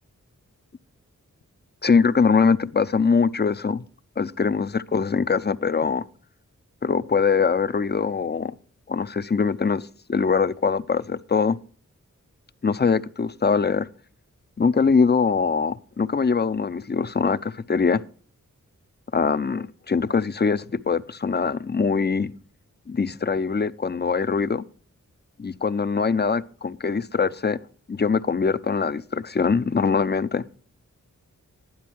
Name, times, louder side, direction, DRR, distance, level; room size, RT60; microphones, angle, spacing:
voice 1, 1.8-3.8 4.2-6.0 6.8-8.5 8.9-11.6 12.6-13.9 14.6-18.0 19.1-22.3 22.9-24.6 25.4-27.6 27.9-30.4, left 5 dB, 35° left, 0.6 m, -22 dB
12.0 x 10.5 x 4.5 m
wide cardioid pair, 65°, 31 cm